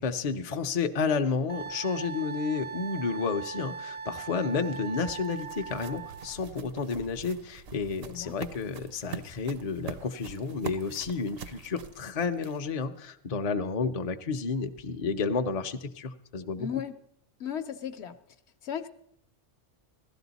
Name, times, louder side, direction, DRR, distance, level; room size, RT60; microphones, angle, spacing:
voice 1, 0.0-16.7, left 5 dB, 45° left, 6 dB, 0.6 m, -31 dB
Wind instrument woodwind instrument, 1.5-6.4, right 5 dB, 15° right, 0.4 m, -40 dB
sound 1, 4.3-12.8, right 6 dB, 60° right, 0.8 m, -44 dB
voice 2, 8.0-8.4 16.6-17.0 17.4-18.2 18.6-18.9, left 8 dB, 65° left, 8 dB, 0.9 m, -35 dB
16.0 x 12.5 x 4.0 m, 0.71 s
omnidirectional pair, 1.3 m